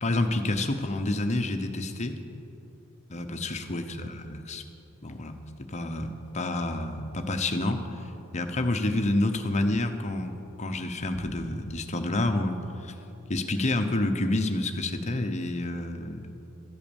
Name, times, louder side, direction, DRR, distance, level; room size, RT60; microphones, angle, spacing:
voice 1, 0.0-2.2 3.1-4.6 5.0-5.3 5.7-12.6 12.8-12.9 13.3-16.2, left 2 dB, 30° left, 6 dB, 0.8 m, -29 dB
13.0 x 8.3 x 7.0 m, 2.9 s
head